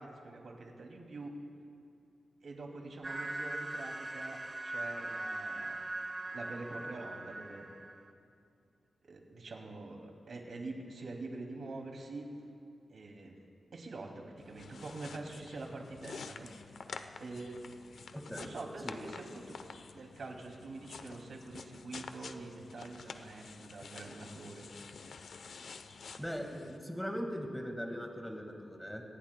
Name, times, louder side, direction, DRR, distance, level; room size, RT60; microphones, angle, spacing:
voice 1, 0.0-1.3 2.4-5.8 6.3-7.7 9.0-12.3 12.9-13.4 13.7-16.5 17.2-17.6 18.3-19.6 19.9-24.7, right 3 dB, 65° right, 1 dB, 2.5 m, -45 dB
sound 1, 3.0-8.1, right 2 dB, 25° right, 0.9 m, -40 dB
sound 2, 14.4-26.8, left 5 dB, 70° left, 0.7 m, -49 dB
voice 2, 18.1-18.5 18.8-19.0 26.2-29.0, equal, ahead, 2 dB, 1.7 m, -40 dB
26.0 x 19.0 x 2.2 m, 2.5 s
wide cardioid pair, 130°, 0 cm